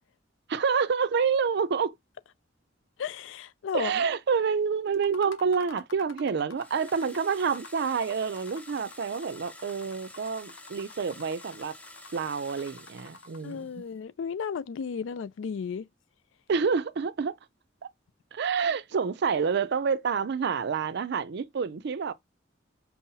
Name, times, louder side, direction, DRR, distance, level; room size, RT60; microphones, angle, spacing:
voice 1, 0.5-1.9 3.7-11.7 12.1-13.7 16.5-17.4 18.3-22.1, right 5 dB, 60° right, 0.4 m, -28 dB
voice 2, 3.0-4.0 13.4-15.9, left 6 dB, 70° left, 0.4 m, -34 dB
sound 1, 4.9-13.5, left 4 dB, 85° left, 0.8 m, -49 dB
sound 2, 6.6-13.9, left 2 dB, 5° left, 0.6 m, -49 dB
5.5 x 2.0 x 2.7 m
head